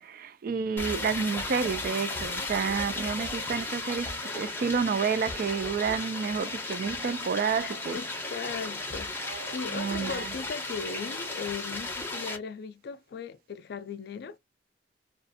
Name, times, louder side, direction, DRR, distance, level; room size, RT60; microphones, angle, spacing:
voice 1, 0.0-8.0 9.2-10.3, right 6 dB, 55° right, 0.3 m, -30 dB
sound 1, 0.8-12.4, left 2 dB, 10° left, 0.6 m, -35 dB
voice 2, 7.6-14.4, left 5 dB, 60° left, 0.4 m, -38 dB
2.5 x 2.3 x 2.5 m
head